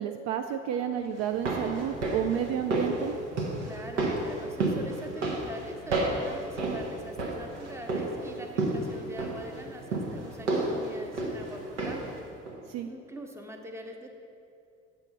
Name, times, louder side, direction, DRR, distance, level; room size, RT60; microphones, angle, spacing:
voice 1, 0.0-3.1 12.7-12.9, right 9 dB, 50° right, 7 dB, 0.4 m, -31 dB
sound 1, 1.2-12.2 12.5-12.6, right 2 dB, 80° right, 1.0 m, -32 dB
voice 2, 3.6-12.2 12.9-14.1, right 1 dB, 10° right, 3 dB, 0.9 m, -43 dB
7.8 x 4.1 x 5.7 m, 2.5 s
figure-of-eight pair, 55°, 35 cm